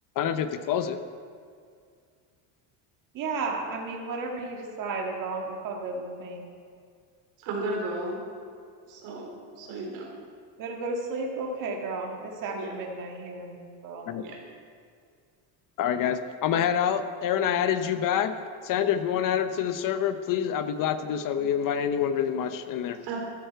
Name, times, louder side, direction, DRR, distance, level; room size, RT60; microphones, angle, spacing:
voice 1, 0.2-1.0 14.1-14.2 15.8-18.3 18.6-23.0, left 9 dB, 50° left, 10 dB, 0.7 m, -26 dB
voice 2, 3.1-6.4 10.6-14.1, right 3 dB, 45° right, 0 dB, 1.8 m, -33 dB
voice 3, 7.4-8.2 8.9-9.3 9.5-10.1 12.5-12.7 14.2-14.4 23.0-23.2, right 2 dB, 70° right, -1 dB, 3.8 m, -34 dB
13.5 x 12.5 x 4.5 m, 2.2 s
cardioid pair, 145°, 44 cm